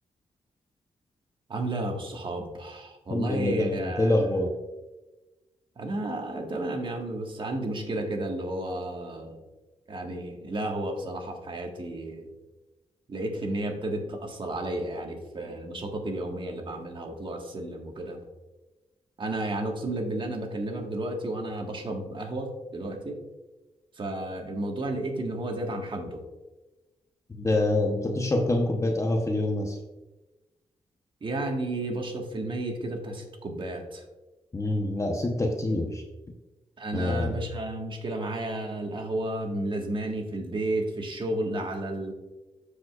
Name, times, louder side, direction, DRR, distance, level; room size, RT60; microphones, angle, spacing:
voice 1, 1.5-4.1 5.8-9.4 9.9-12.3 13.1-18.2 19.2-23.2 24.0-26.2 31.2-34.0 36.8-42.1, right 1 dB, 45° right, 2 dB, 1.5 m, -32 dB
voice 2, 3.1-4.5 27.3-29.8 34.5-36.0 36.9-37.4, left 1 dB, 25° left, 2 dB, 0.9 m, -26 dB
14.0 x 5.1 x 2.4 m, 1.1 s
cardioid pair, 85°, 12 cm